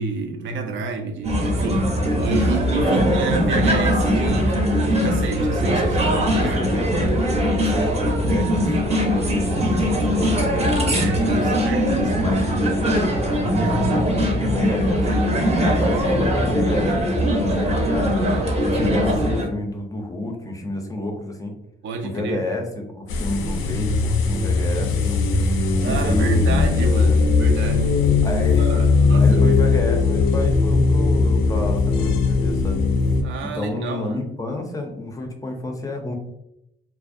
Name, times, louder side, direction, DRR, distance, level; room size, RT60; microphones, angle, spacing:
voice 1, 0.0-6.6 10.9-12.3 17.8-18.5 21.8-22.4 25.8-28.0 28.6-29.8 33.2-34.2, right 5 dB, 75° right, 5 dB, 0.4 m, -30 dB
sound 1, 1.2-19.5, equal, 30° right, 0.6 m, -21 dB
voice 2, 6.3-11.6 12.2-12.9 13.2-15.1 15.6-18.1 18.6-21.5 22.0-26.9 28.2-28.8 29.2-32.8 33.4-36.2, left 1 dB, 15° left, 2 dB, 0.4 m, -29 dB
sound 2, 23.1-33.2, left 4 dB, 90° left, 0.4 m, -19 dB
2.4 x 2.0 x 2.5 m, 0.82 s
cardioid pair, 90°, 20 cm